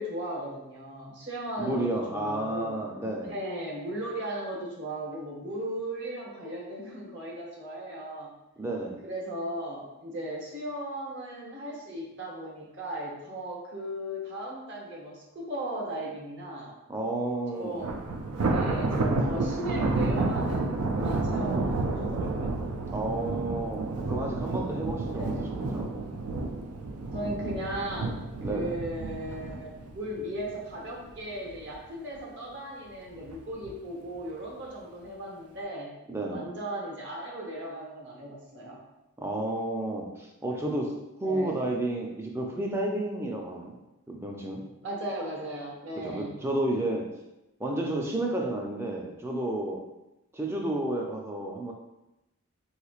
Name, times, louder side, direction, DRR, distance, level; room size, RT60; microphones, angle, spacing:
voice 1, 0.0-2.8 3.2-8.3 9.0-16.7 17.5-18.0 18.5-22.6 25.1-25.5 27.1-28.2 28.5-35.9 36.3-38.8 41.2-41.6 44.8-46.3, right 1 dB, 55° right, -3 dB, 0.9 m, -37 dB
voice 2, 1.6-3.3 8.6-9.0 16.9-17.8 22.9-25.9 28.4-28.8 36.1-36.5 39.2-40.9 41.2-43.8 44.1-44.6 46.0-47.1 47.6-49.8 50.3-51.7, right 1 dB, 10° right, 0 dB, 0.4 m, -31 dB
Thunder, 17.8-31.1 31.5-31.8 32.2-32.3 33.1-33.7, right 3 dB, 85° right, 0.4 m, -30 dB
3.7 x 3.0 x 2.4 m, 0.95 s
head